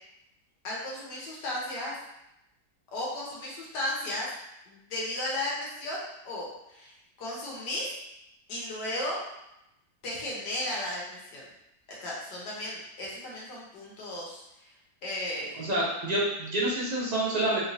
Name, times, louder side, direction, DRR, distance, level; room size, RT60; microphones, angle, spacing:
voice 1, 0.6-1.9 2.9-4.3 4.7-7.9 8.5-9.2 10.0-11.5 11.9-14.7 15.0-15.6, left 1 dB, 90° left, -4 dB, 1.6 m, -35 dB
voice 2, 15.6-17.6, right 1 dB, 35° right, -5 dB, 0.8 m, -28 dB
4.4 x 3.1 x 2.7 m, 0.86 s
omnidirectional pair, 1.8 m